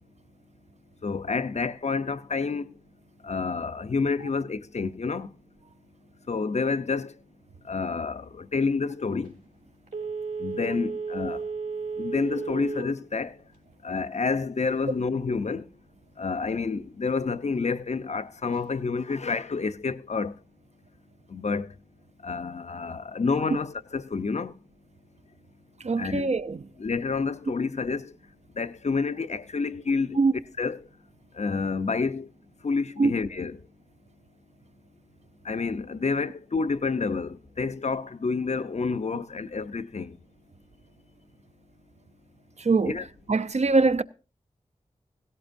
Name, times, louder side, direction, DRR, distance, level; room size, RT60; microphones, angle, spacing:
voice 1, 1.0-2.7 3.2-5.3 6.3-7.1 7.7-9.3 10.4-11.4 12.0-13.3 13.8-15.6 16.2-20.3 21.3-21.7 22.2-24.5 26.0-26.3 26.8-28.1 28.6-30.2 30.6-30.8 31.4-32.3 32.6-33.6 35.5-40.1 42.9-43.1, left 4 dB, 55° left, 0.7 m, -29 dB
Telephone, 9.9-13.0 13.4-13.5, right 5 dB, 85° right, 3.1 m, -33 dB
voice 2, 25.8-26.6 30.2-30.3 33.0-33.1 42.6-43.0 43.3-44.0, right 3 dB, 55° right, 0.6 m, -22 dB
17.0 x 16.5 x 2.6 m
cardioid pair, 45°, 14 cm